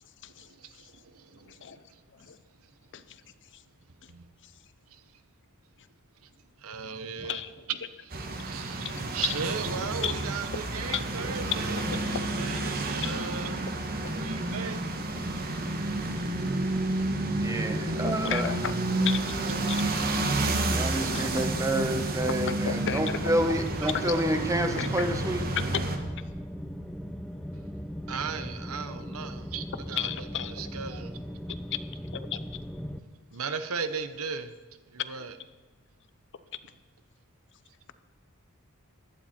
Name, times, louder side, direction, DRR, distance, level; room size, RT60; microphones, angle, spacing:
voice 1, 0.3-1.8 4.1-4.3 4.9-5.0 6.6-7.4 8.1-8.9 9.1-11.8 12.4-13.5 14.1-14.9 28.1-30.1 30.5-31.2 33.3-34.5 34.9-35.3, right 5 dB, 70° right, 11 dB, 0.9 m, -37 dB
voice 2, 1.4-1.8 2.1-2.4 2.9-3.2 3.5-3.6 4.4-4.5 7.2-7.7 9.0-9.4 10.0-10.1 10.9-11.0 11.9-12.3 12.6-12.7 13.0-13.1 18.0-18.7 19.0-19.2 19.7-19.8 21.1-21.4 22.5-23.6 23.9-24.1 24.8-25.1 25.7-25.9 30.0-30.7 31.5-32.6 35.2-35.3, left 9 dB, 55° left, 12 dB, 0.7 m, -34 dB
sound 1, 8.1-26.0, right 2 dB, 45° right, 1.4 m, -30 dB
voice 3, 17.3-18.5 20.6-25.4, right 1 dB, 15° right, 7 dB, 1.1 m, -29 dB
sound 2, 19.5-33.0, equal, 5° left, 0.5 m, -38 dB
15.5 x 11.5 x 4.4 m, 1.2 s
head